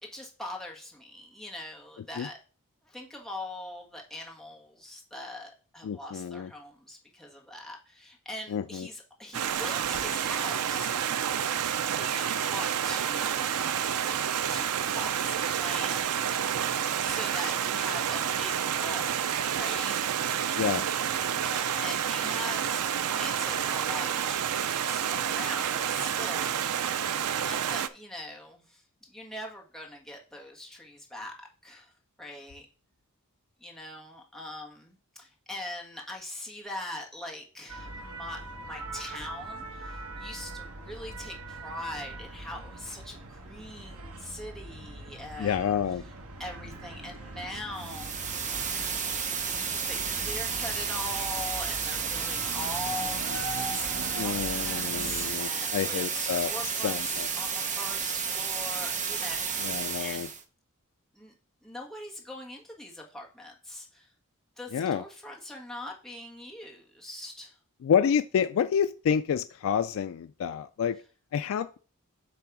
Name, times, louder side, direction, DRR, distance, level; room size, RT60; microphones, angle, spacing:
voice 1, 0.0-2.4 2.8-11.2 12.0-13.7 14.5-16.3 17.0-20.3 21.4-26.7 27.2-31.3 31.6-32.7 33.6-46.0 46.4-48.1 49.9-60.3 61.1-61.3 61.6-64.1 64.6-67.6, left 1 dB, ahead, 1.5 m, -42 dB
voice 2, 5.8-6.5 8.5-8.9 20.6-20.8 45.4-46.0 54.1-56.5 56.8-57.3 59.6-60.3 64.7-65.0 67.8-71.0 71.3-71.8, left 8 dB, 65° left, 0.3 m, -28 dB
Stream, 9.3-27.9, right 9 dB, 90° right, 0.5 m, -29 dB
sound 1, 37.7-55.3, right 2 dB, 70° right, 1.1 m, -41 dB
sound 2, 47.8-60.4, right 6 dB, 35° right, 0.9 m, -32 dB
8.3 x 3.4 x 5.9 m
head